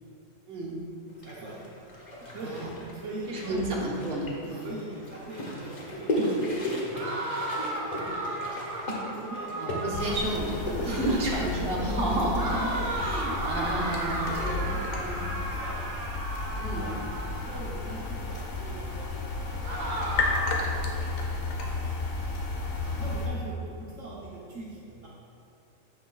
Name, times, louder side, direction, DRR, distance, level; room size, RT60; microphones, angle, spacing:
voice 1, 0.5-0.8 2.4-2.8 3.3-4.7 9.5-12.7 13.0-15.2 16.6-17.0 22.8-23.0, right 1 dB, 45° right, -3 dB, 1.4 m, -31 dB
sound 1, 1.2-11.5, equal, 35° left, 1.1 m, -35 dB
voice 2, 1.2-1.5 2.2-3.8 4.4-7.0 7.7-8.6 8.9-9.5 10.6-12.3 12.6-13.8 14.3-15.9 16.7-17.0 17.5-21.4 23.0-25.1, right 2 dB, 70° right, -6 dB, 1.3 m, -42 dB
sound 2, 6.9-10.3 12.4-17.6 19.6-20.7, right 1 dB, 85° right, 1.6 m, -34 dB
sound 3, 9.9-23.3, left 3 dB, 75° left, 1.2 m, -32 dB
9.4 x 6.1 x 2.3 m, 2.6 s
omnidirectional pair, 1.4 m